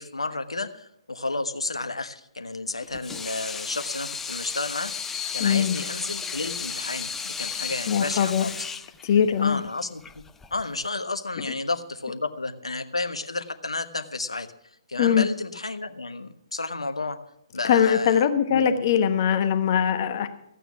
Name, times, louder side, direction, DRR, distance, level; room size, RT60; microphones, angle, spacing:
voice 1, 0.0-4.9 5.3-8.6 9.2-10.0 10.5-14.5 14.9-17.2 17.5-18.9, left 3 dB, 75° left, 8 dB, 1.2 m, -32 dB
Water tap faucet / Sink (filling or washing), 2.8-10.9, left 6 dB, 10° left, 0.4 m, -34 dB
voice 2, 5.4-5.8 7.9-8.5 9.0-9.6 15.0-15.3 17.6-20.3, left 8 dB, 40° left, 9 dB, 1.2 m, -21 dB
15.0 x 9.2 x 5.9 m, 0.76 s
figure-of-eight pair, 130°, 3 cm